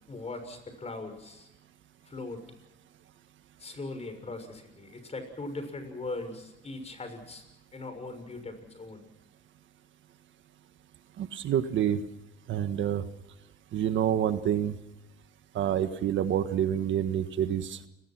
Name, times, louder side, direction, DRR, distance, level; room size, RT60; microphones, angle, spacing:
voice 1, 0.1-1.5 2.0-2.4 3.6-7.4 7.7-9.0, left 2 dB, 30° left, 8 dB, 6.5 m, -40 dB
voice 2, 11.2-12.0 12.5-13.0 13.7-14.7 15.5-17.8, right 10 dB, 75° right, 10 dB, 1.6 m, -27 dB
30.0 x 19.5 x 6.1 m, 0.93 s
cardioid pair, 90°, 20 cm